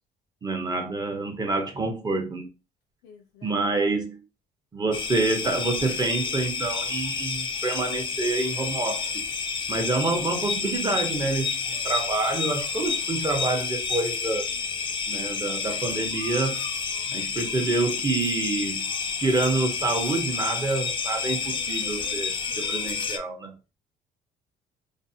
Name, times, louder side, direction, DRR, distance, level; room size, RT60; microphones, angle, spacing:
voice 1, 0.4-2.5 3.4-4.2 4.7-9.3 9.7-11.6 11.8-14.5 15.1-16.6 17.1-18.9 19.2-23.5, right 3 dB, 25° right, 0.7 m, -27 dB
voice 2, 3.0-3.7 9.9-10.1 22.8-23.5, left 7 dB, 85° left, 0.5 m, -51 dB
sound 1, 4.9-23.2, left 5 dB, 30° left, 0.4 m, -30 dB
2.5 x 2.0 x 2.6 m
cardioid pair, 110°, 17 cm